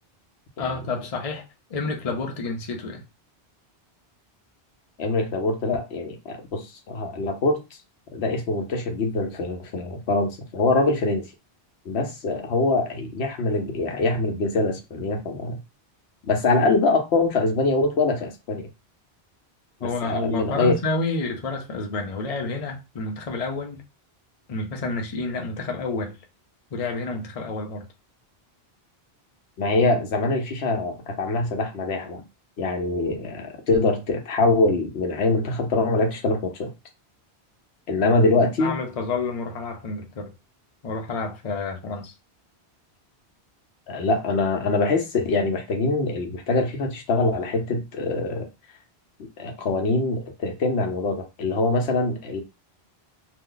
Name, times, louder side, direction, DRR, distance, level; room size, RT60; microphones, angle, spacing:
voice 1, 0.6-3.0 19.8-23.8 24.5-26.2 26.7-27.9 38.1-40.3 40.8-42.1, left 3 dB, 40° left, 0.7 m, -29 dB
voice 2, 5.0-7.6 8.1-11.2 11.9-15.6 16.2-18.7 19.8-20.8 29.6-32.2 32.6-36.7 37.9-38.7 43.9-48.5 49.4-52.4, left 3 dB, 80° left, 1.0 m, -24 dB
2.8 x 2.1 x 3.7 m
omnidirectional pair, 1.1 m